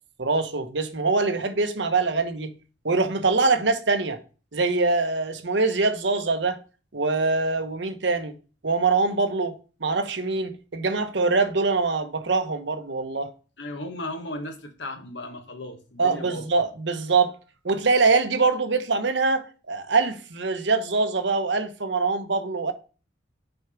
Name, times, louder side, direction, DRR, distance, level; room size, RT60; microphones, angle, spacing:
voice 1, 0.2-2.5 2.8-4.2 4.5-6.6 6.9-8.3 8.6-9.5 9.8-13.3 16.0-17.4 17.6-22.7, right 3 dB, 75° right, 1.0 m, -23 dB
voice 2, 13.6-16.5, left 1 dB, 80° left, 1.3 m, -36 dB
6.2 x 4.6 x 5.1 m
head